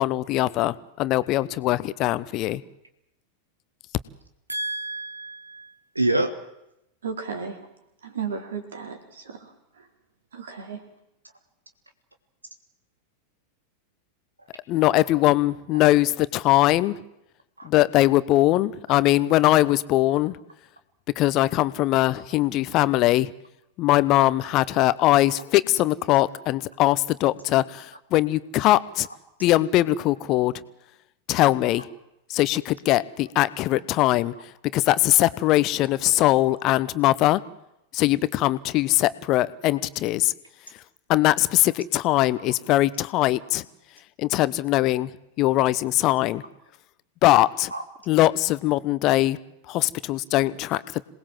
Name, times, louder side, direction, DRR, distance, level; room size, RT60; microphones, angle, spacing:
voice 1, 0.0-2.6 14.7-17.0 17.6-20.4 21.2-23.3 23.8-29.1 29.4-30.5 31.3-31.9 32.3-34.3 34.7-37.4 37.9-40.3 41.1-43.6 44.2-45.1 45.4-46.4 47.2-47.7 48.1-49.4 49.7-51.0, left 16 dB, 40° left, 17 dB, 1.0 m, -21 dB
voice 2, 4.5-6.3 17.6-17.7 47.7-47.8, right 2 dB, 85° right, 8 dB, 1.6 m, -27 dB
voice 3, 7.0-7.6 8.0-9.9 10.3-10.8, right 6 dB, 65° right, 6 dB, 4.6 m, -35 dB
27.0 x 19.5 x 7.6 m, 0.84 s
figure-of-eight pair, 90°, 0 cm